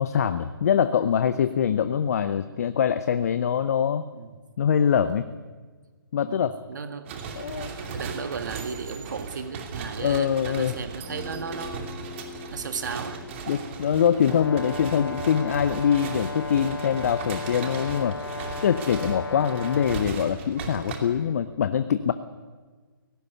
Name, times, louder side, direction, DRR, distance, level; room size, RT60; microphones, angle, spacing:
voice 1, 0.0-4.0 4.6-5.3 6.1-6.6 7.4-7.7 10.0-10.7 13.5-18.2 18.6-22.1, left 8 dB, 40° left, 12 dB, 0.8 m, -24 dB
voice 2, 1.3-1.8 4.1-4.4 6.3-7.1 7.6-12.0 12.5-13.6, right 5 dB, 55° right, 9 dB, 1.9 m, -36 dB
sound 1, 7.1-21.0, right 5 dB, 30° right, 2.7 m, -37 dB
Guitar, 11.0-18.7, left 6 dB, 25° left, 2.0 m, -47 dB
Brass instrument, 14.2-20.1, left 3 dB, 80° left, 0.7 m, -35 dB
17.5 x 17.0 x 9.5 m, 1.4 s
figure-of-eight pair, 140°, 12 cm